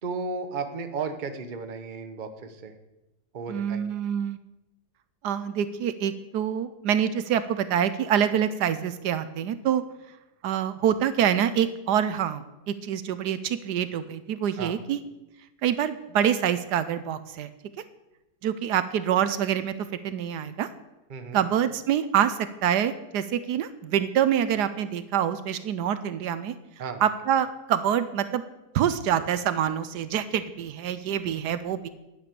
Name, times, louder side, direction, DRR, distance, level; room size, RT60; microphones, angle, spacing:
voice 1, 0.0-2.7 3.3-3.9 14.6-14.8 21.1-21.4 26.8-27.0, right 4 dB, 35° right, 8 dB, 0.9 m, -34 dB
voice 2, 3.5-4.4 5.2-9.8 10.4-15.0 15.6-17.5 18.4-19.7 20.0-20.7 21.3-26.5 27.0-28.4 28.7-31.9, right 9 dB, 75° right, 13 dB, 1.3 m, -26 dB
11.0 x 8.8 x 6.8 m, 0.96 s
omnidirectional pair, 1.8 m